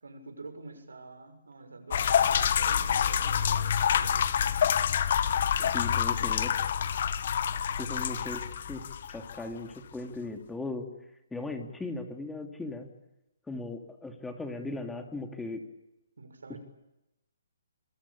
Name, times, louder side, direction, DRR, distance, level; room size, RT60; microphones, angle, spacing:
voice 1, 0.0-4.6 7.8-8.1 16.2-16.6, right 3 dB, 90° right, 7 dB, 6.6 m, -47 dB
sound 1, 1.9-9.5, left 8 dB, 55° left, 1.8 m, -27 dB
voice 2, 5.7-6.5 7.7-8.4 8.7-8.8 9.1-10.9 11.3-12.9 13.5-15.6, left 2 dB, 5° left, 4 dB, 2.9 m, -37 dB
26.5 x 22.5 x 8.6 m, 0.90 s
hypercardioid pair, 150°, 0 cm